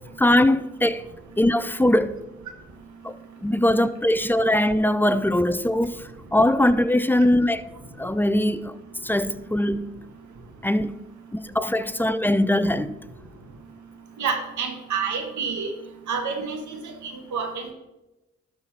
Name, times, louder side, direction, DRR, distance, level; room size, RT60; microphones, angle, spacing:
voice 1, 0.2-1.1 1.4-2.2 3.0-7.6 8.0-10.0 10.6-10.9 11.3-12.9, left 1 dB, 5° left, 0.5 m, -21 dB
voice 2, 14.2-15.7 16.1-17.7, right 5 dB, 80° right, 1.6 m, -29 dB
12.0 x 4.1 x 5.9 m
supercardioid pair, 55°, 29 cm